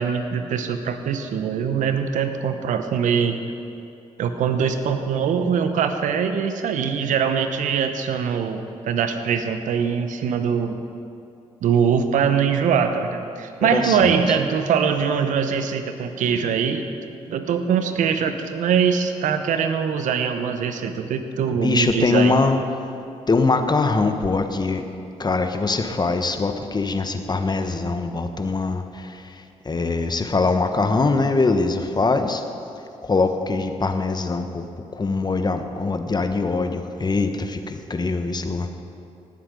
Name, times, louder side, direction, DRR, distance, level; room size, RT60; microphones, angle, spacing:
voice 1, 0.0-3.4 4.2-10.8 11.6-16.9 17.3-22.3, right 7 dB, 75° right, 8 dB, 0.9 m, -22 dB
voice 2, 13.7-14.1 21.5-22.6 23.3-24.8 25.2-29.2 29.6-32.4 33.0-34.6 34.9-38.7, left 3 dB, 30° left, 7 dB, 1.2 m, -22 dB
18.5 x 7.6 x 5.2 m, 2.6 s
supercardioid pair, 55°, 13 cm